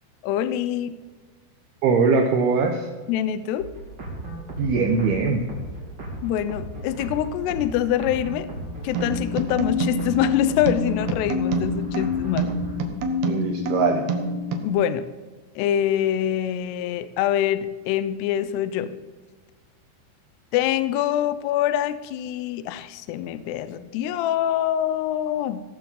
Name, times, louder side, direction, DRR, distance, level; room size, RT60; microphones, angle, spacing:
voice 1, 0.2-0.9 3.1-3.7 6.2-8.5 8.8-12.6 14.6-15.1 15.6-18.9 20.5-25.6, left 11 dB, 80° left, 13 dB, 2.5 m, -25 dB
voice 2, 1.8-2.9 4.6-5.4 13.3-14.0, right 4 dB, 70° right, 3 dB, 2.6 m, -21 dB
sound 1, 3.6-12.8, right 1 dB, 25° right, 2.9 m, -36 dB
sound 2, 8.9-14.7, left 1 dB, 85° right, 1.5 m, -27 dB
16.5 x 7.6 x 7.3 m, 1.4 s
omnidirectional pair, 5.2 m